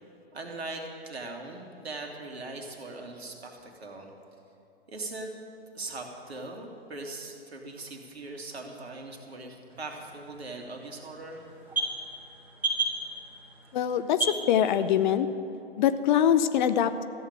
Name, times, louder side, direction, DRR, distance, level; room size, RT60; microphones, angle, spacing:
voice 1, 0.3-4.1 4.9-5.3 5.7-11.5, right 2 dB, 80° right, 2 dB, 2.3 m, -40 dB
sound 1, 9.7-15.2, right 3 dB, 5° right, 2.9 m, -35 dB
voice 2, 13.7-15.3 15.8-17.0, left 9 dB, 50° left, 12 dB, 0.7 m, -23 dB
14.0 x 8.2 x 8.8 m, 2.8 s
figure-of-eight pair, 115°, 31 cm